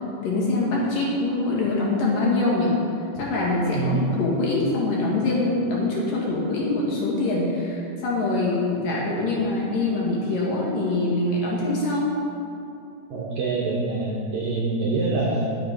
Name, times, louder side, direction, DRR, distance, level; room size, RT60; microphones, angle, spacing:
voice 1, 0.2-2.7 3.2-12.2, left 2 dB, 65° left, -5 dB, 3.3 m, -24 dB
voice 2, 3.7-4.3 13.1-15.5, right 3 dB, 75° right, -3 dB, 1.7 m, -25 dB
12.0 x 6.6 x 5.2 m, 2.7 s
omnidirectional pair, 4.4 m